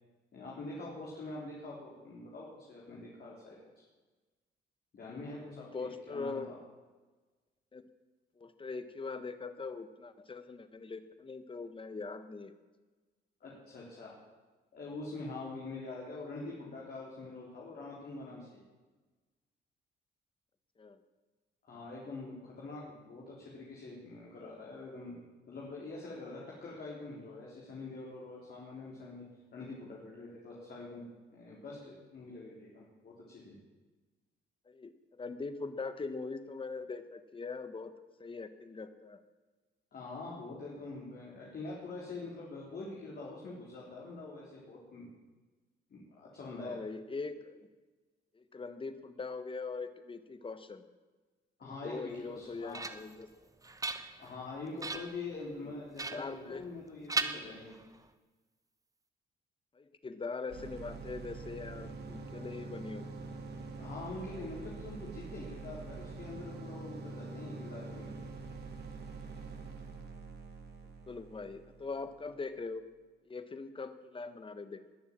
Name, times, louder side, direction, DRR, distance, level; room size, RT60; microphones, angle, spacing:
voice 1, 0.3-3.6 4.9-6.6 13.4-14.2 14.7-18.6 21.6-25.1 25.5-29.2 29.5-31.0 31.3-33.5 39.9-45.1 45.9-46.8 51.6-52.8 54.2-57.7 63.8-68.1, left 3 dB, 50° left, -4 dB, 3.9 m, -45 dB
voice 2, 5.7-6.5 7.7-7.8 8.4-12.5 20.8-21.0 34.7-37.9 38.2-39.2 46.6-47.6 48.3-50.8 51.6-53.3 54.9-55.0 56.1-56.6 59.7-63.0 71.1-72.8 73.3-74.8, left 4 dB, 25° left, 10 dB, 1.3 m, -41 dB
sound 1, 52.2-53.2 53.6-54.4 54.8-55.2 56.0-56.8 57.1-58.0, right 3 dB, 15° right, 1.0 m, -38 dB
sound 2, 60.5-72.3, right 3 dB, 55° right, 2.5 m, -45 dB
20.5 x 7.1 x 7.5 m, 1.3 s
cardioid pair, 90°, 20 cm